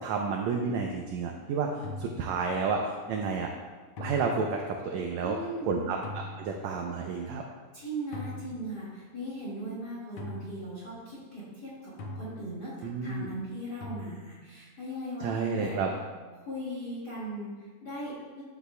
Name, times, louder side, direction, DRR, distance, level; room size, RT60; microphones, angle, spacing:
voice 1, 0.0-1.7 2.0-3.5 4.0-5.4 5.6-7.4 12.8-13.3 15.2-15.9, right 5 dB, 75° right, 2 dB, 1.7 m, -31 dB
sound 1, 1.8-2.7 4.0-5.0 6.0-6.8 8.1-9.4 10.2-11.3 12.0-13.2 13.8-14.8 15.6-16.4, left 1 dB, 65° left, 1.6 m, -43 dB
voice 2, 5.2-5.9 7.2-7.3 7.7-15.8 16.4-18.4, right 1 dB, 35° left, -7 dB, 2.0 m, -38 dB
11.5 x 8.2 x 2.2 m, 1.4 s
omnidirectional pair, 3.7 m